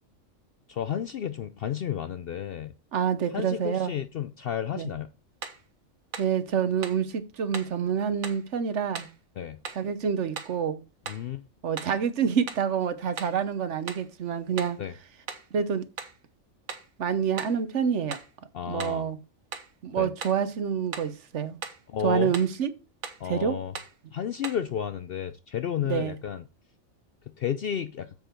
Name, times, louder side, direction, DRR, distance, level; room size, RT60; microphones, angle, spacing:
voice 1, 0.7-2.7 3.3-5.1 9.4-9.6 11.1-11.4 14.8-14.9 18.5-19.1 20.0-20.1 21.9-22.3 23.2-23.7 24.1-26.4 27.4-28.1, left 9 dB, 60° left, 0.6 m, -32 dB
voice 2, 2.9-3.9 4.7-4.9 6.2-9.1 9.7-10.8 11.6-14.8 15.5-15.9 17.0-18.2 18.7-19.2 19.8-21.6 22.0-22.7 23.2-23.6 25.8-26.1, right 7 dB, 65° right, 1.1 m, -27 dB
sound 1, 5.4-5.6 6.1-6.4 6.8-7.1 7.5-7.8 8.2-8.5 8.9-9.2 9.6-9.9 10.4-10.6 11.1-11.3 11.8-12.0 12.5-12.7 13.2-13.4 13.9-14.1 14.6-14.8 15.3-15.5 16.0-16.2 16.7-16.9 17.4-17.6 18.1-18.3 18.8-19.0 19.5-19.7 20.2-20.4 20.9-21.2 21.6-21.8 22.3-22.6 23.0-23.3 23.7-24.0 24.4-24.7, right 6 dB, 90° right, 1.6 m, -39 dB
7.5 x 7.2 x 4.5 m
omnidirectional pair, 1.4 m